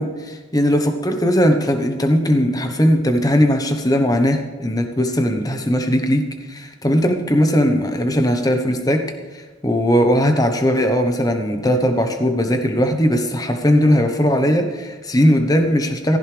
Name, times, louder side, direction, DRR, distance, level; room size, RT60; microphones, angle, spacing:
voice 1, 0.0-9.0 9.6-16.2, equal, 20° left, 6 dB, 1.0 m, -18 dB
16.0 x 15.0 x 3.4 m, 1.3 s
head